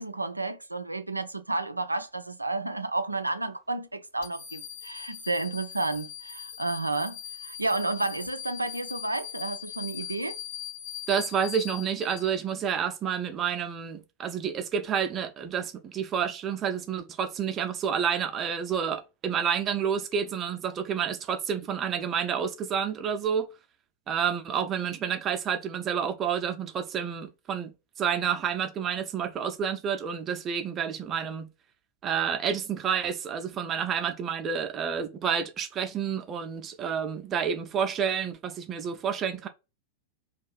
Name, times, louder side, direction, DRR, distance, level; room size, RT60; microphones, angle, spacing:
voice 1, 0.0-10.4, right 2 dB, 85° right, 0.3 m, -31 dB
sound 1, 4.2-12.7, left 10 dB, 55° left, 0.7 m, -41 dB
voice 2, 11.1-23.5 24.1-27.7 28.0-31.5 32.0-39.5, right 7 dB, 30° right, 0.6 m, -29 dB
2.6 x 2.4 x 3.9 m
figure-of-eight pair, 90°, 0 cm